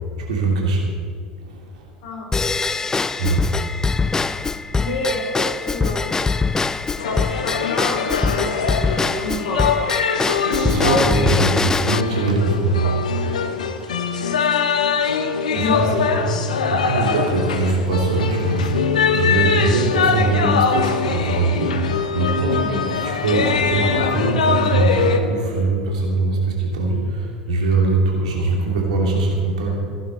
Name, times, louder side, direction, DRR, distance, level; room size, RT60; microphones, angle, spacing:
voice 1, 0.3-0.9 1.5-1.8 3.2-3.5 10.5-13.0 15.5-16.1 16.7-18.7 19.2-22.6 23.0-29.8, right 3 dB, 65° right, -1 dB, 2.6 m, -21 dB
Drum kit / Drum / Bell, 2.3-12.0, left 4 dB, 15° left, 0.3 m, -23 dB
voice 2, 4.7-6.0 7.0-9.7 15.5-16.4 22.6-22.8, left 2 dB, 55° left, -1 dB, 3.0 m, -28 dB
sound 1, 7.0-25.2, left 6 dB, 70° left, 0.8 m, -22 dB
sound 2, 11.8-14.3 15.0-15.1 18.1-23.7 25.2-25.3, right 1 dB, 80° right, 0.9 m, -34 dB
15.5 x 11.5 x 4.3 m, 2.3 s
figure-of-eight pair, 75°, 4 cm